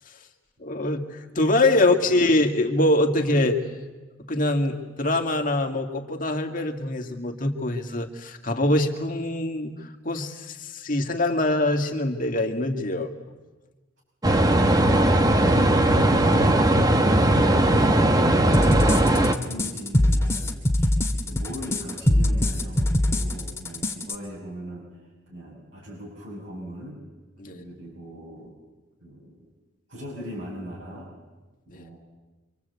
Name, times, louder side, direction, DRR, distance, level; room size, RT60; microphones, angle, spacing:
voice 1, 0.6-3.6 4.3-13.1 17.4-17.6 27.4-27.6 31.7-31.8, left 2 dB, 40° left, 3 dB, 2.2 m, -24 dB
sound 1, 14.2-19.3, right 1 dB, 20° right, 1.1 m, -19 dB
voice 2, 14.2-17.1 17.5-18.7 19.0-20.9 21.2-24.9 25.3-27.0 27.5-28.6 29.0-29.4 29.9-31.1 31.7-32.0, equal, 70° right, -4 dB, 6.4 m, -39 dB
sound 2, 18.5-24.2, left 1 dB, 15° left, 2.0 m, -22 dB
26.0 x 26.0 x 8.3 m, 1.2 s
head